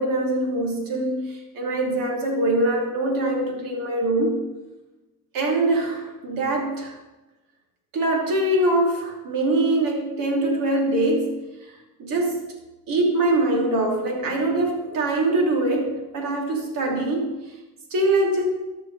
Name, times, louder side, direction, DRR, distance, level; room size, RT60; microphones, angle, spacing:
voice 1, 0.0-4.5 5.3-6.9 7.9-11.4 12.0-12.4 12.9-17.4 17.9-18.4, right 2 dB, 55° right, 0 dB, 2.9 m, -23 dB
13.5 x 5.9 x 4.1 m, 1.1 s
supercardioid pair, 110°, 40 cm